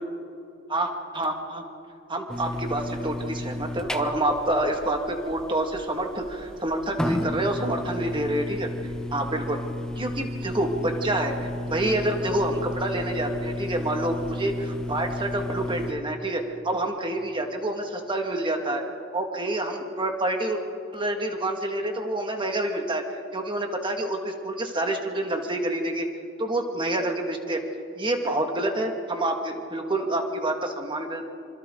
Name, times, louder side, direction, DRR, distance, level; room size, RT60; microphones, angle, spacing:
voice 1, 0.7-1.6 2.1-8.7 9.1-9.6 10.0-18.8 19.1-20.6 20.9-23.0 23.3-26.1 26.4-27.6 28.0-31.3, right 1 dB, 25° right, 3 dB, 1.9 m, -27 dB
sound 1, 2.3-15.9, left 1 dB, 5° left, 0.9 m, -33 dB
26.0 x 25.5 x 3.9 m, 2.6 s
head